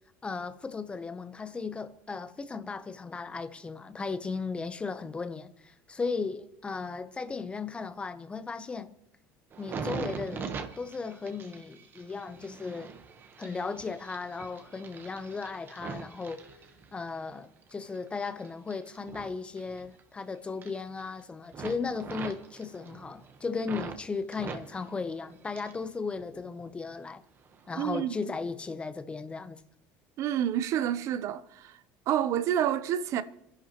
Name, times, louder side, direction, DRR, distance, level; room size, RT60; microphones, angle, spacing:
voice 1, 0.2-8.9 9.6-12.9 13.4-16.4 16.9-27.2 27.7-29.6, left 4 dB, 20° left, 0.9 m, -36 dB
sound 1, 9.5-17.2 17.6-20.2 20.5-21.2 21.5-24.0 24.3-25.9 26.2-26.9 27.5-27.7, right 5 dB, 35° right, 1.1 m, -42 dB
voice 2, 27.7-28.2 30.2-31.8 32.1-33.2, right 10 dB, 55° right, 0.7 m, -28 dB
28.5 x 11.0 x 3.0 m
cardioid pair, 130°, 6 cm